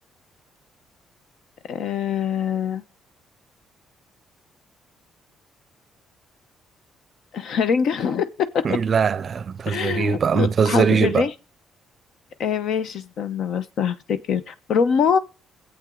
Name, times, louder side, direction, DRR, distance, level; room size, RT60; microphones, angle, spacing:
voice 1, 1.7-2.8 7.3-8.3 9.7-11.3 12.4-14.0 14.3-15.2, left 6 dB, 65° left, 0.9 m, -23 dB
voice 2, 8.6-11.2, right 6 dB, 40° right, 0.5 m, -21 dB
21.5 x 8.1 x 3.8 m
cardioid pair, 125°, 0 cm